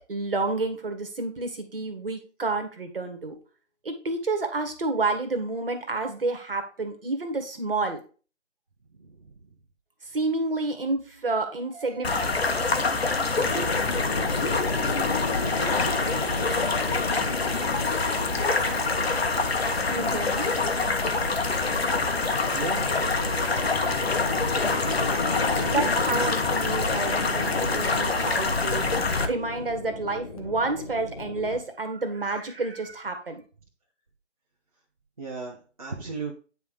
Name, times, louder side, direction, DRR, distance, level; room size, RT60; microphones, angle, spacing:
voice 1, 0.1-3.3 3.8-8.0 10.1-12.1 19.7-20.6 25.6-28.9 29.2-33.4, right 3 dB, 50° right, 6 dB, 1.5 m, -29 dB
voice 2, 9.0-9.3 22.5-22.9 35.2-36.3, right 4 dB, 30° right, -2 dB, 0.8 m, -35 dB
sound 1, 12.0-29.3, left 3 dB, 55° left, 1.1 m, -26 dB
sound 2, 13.4-31.6, left 3 dB, 30° left, 0.8 m, -34 dB
9.3 x 3.7 x 4.7 m, 0.37 s
figure-of-eight pair, 150°, 37 cm